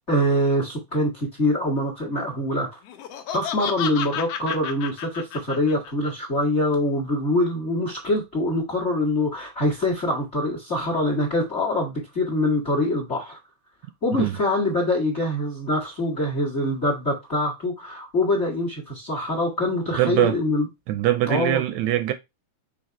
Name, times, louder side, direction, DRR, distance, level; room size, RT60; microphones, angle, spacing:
voice 1, 0.1-2.8 3.3-13.4 14.0-20.7 21.3-21.6, left 1 dB, 30° left, 1.4 m, -24 dB
Laughter, 2.9-6.1, left 8 dB, 70° left, 1.6 m, -31 dB
voice 2, 20.0-20.4 20.9-22.1, right 13 dB, 80° right, 1.8 m, -22 dB
6.4 x 3.3 x 4.5 m
omnidirectional pair, 3.4 m